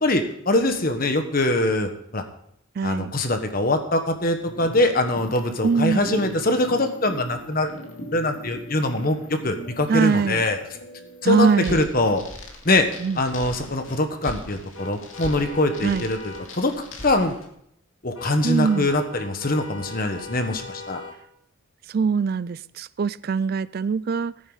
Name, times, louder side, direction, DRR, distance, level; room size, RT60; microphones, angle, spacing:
voice 1, 0.0-2.2 2.8-7.7 8.1-10.6 11.2-12.2 12.6-12.9 13.2-16.7 17.0-17.4 18.0-21.0, left 2 dB, 45° left, 6 dB, 1.3 m, -23 dB
voice 2, 2.8-3.1 5.6-6.0 9.9-10.5 11.2-11.8 13.0-13.2 15.8-16.1 18.4-18.9 21.9-24.3, right 5 dB, 50° right, 20 dB, 0.3 m, -22 dB
sound 1, 4.4-17.5, equal, 85° left, 2.3 m, -40 dB
sound 2, 14.7-16.5 18.1-21.2, left 3 dB, 65° left, 2.4 m, -39 dB
16.5 x 9.4 x 4.0 m, 0.73 s
head